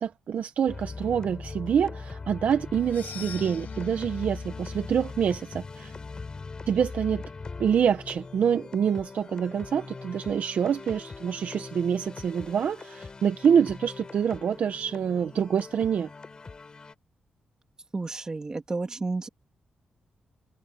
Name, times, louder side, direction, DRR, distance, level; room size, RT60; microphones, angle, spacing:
voice 1, 0.0-5.9 6.7-7.2 7.6-16.1, right 8 dB, 60° right, 1.1 m, -26 dB
sound 1, 0.7-16.9, left 4 dB, 30° left, 3.8 m, -41 dB
sound 2, 2.8-7.1, left 9 dB, 80° left, 7.2 m, -47 dB
voice 2, 17.9-19.3, right 3 dB, 25° right, 2.2 m, -31 dB
wide cardioid pair, 130°, 3 cm